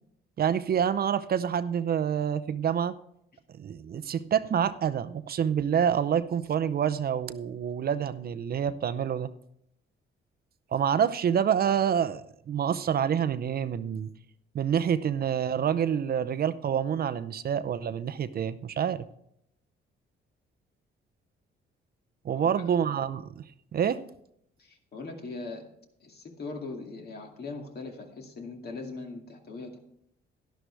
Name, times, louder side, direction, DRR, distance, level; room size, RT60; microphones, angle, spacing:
voice 1, 0.4-2.9 3.6-9.3 10.7-14.1 14.5-19.0 22.2-23.4 23.7-24.0, right 8 dB, 50° right, 14 dB, 0.6 m, -27 dB
voice 2, 24.6-25.7 26.0-29.8, left 3 dB, 55° left, 3 dB, 2.3 m, -40 dB
11.5 x 11.0 x 3.4 m, 0.73 s
cardioid pair, 90°, 20 cm